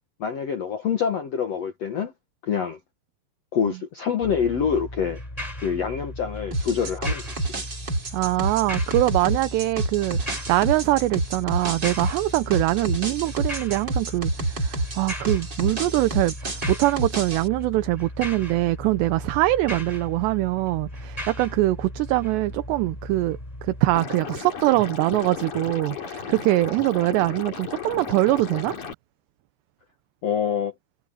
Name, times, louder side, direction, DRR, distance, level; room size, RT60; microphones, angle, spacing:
voice 1, 0.2-2.1 2.4-2.8 3.5-5.2 5.6-7.5 30.2-30.7, left 7 dB, 80° left, 1.4 m, -26 dB
sound 1, 4.2-24.0, left 1 dB, 10° left, 3.8 m, -37 dB
sound 2, 6.5-17.5, right 2 dB, 25° right, 4.0 m, -29 dB
voice 2, 8.1-28.7, right 17 dB, 80° right, 2.9 m, -23 dB
Liquid, 23.9-28.9, left 6 dB, 45° left, 4.4 m, -35 dB
omnidirectional pair, 5.2 m